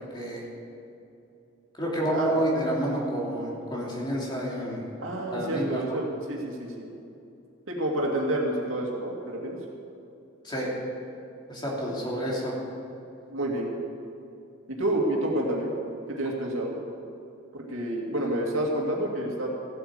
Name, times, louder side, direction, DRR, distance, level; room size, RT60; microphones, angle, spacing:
voice 1, 0.1-0.4 1.8-4.8 5.3-6.0 10.4-10.7 11.5-12.5, right 1 dB, 20° left, -4 dB, 3.1 m, -29 dB
voice 2, 5.0-6.9 7.7-9.6 13.3-13.8 14.7-15.7 16.1-16.8 17.5-19.5, right 1 dB, 75° right, -1 dB, 2.5 m, -29 dB
15.5 x 8.8 x 7.8 m, 2.7 s
head